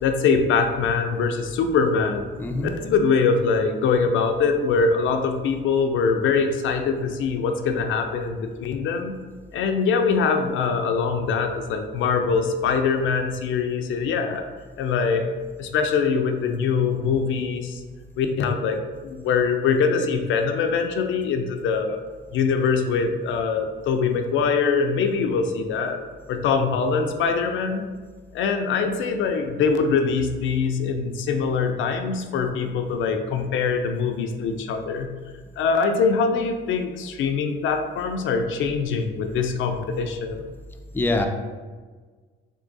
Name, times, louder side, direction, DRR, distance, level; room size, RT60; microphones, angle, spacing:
voice 1, 0.0-2.3 2.8-9.2 9.5-14.4 14.8-15.3 15.6-17.8 18.2-22.0 22.3-26.0 26.3-27.9 28.3-35.1 35.6-40.5, left 5 dB, 80° left, 5 dB, 0.5 m, -23 dB
voice 2, 2.4-2.7 40.9-41.3, left 2 dB, 10° left, 4 dB, 0.4 m, -23 dB
3.5 x 2.7 x 3.9 m, 1.4 s
cardioid pair, 90°, 20 cm